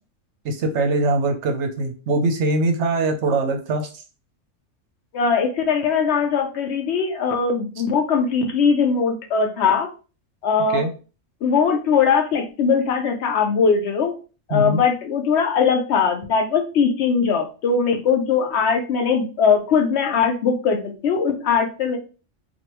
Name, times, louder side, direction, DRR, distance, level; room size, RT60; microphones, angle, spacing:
voice 1, 0.4-3.9 10.7-10.9 14.5-14.8, right 2 dB, 65° right, 5 dB, 0.8 m, -22 dB
voice 2, 5.1-9.9 10.4-10.9 11.4-14.1 14.5-22.0, left 6 dB, 65° left, 5 dB, 0.8 m, -20 dB
3.3 x 2.4 x 2.9 m, 0.35 s
omnidirectional pair, 1.3 m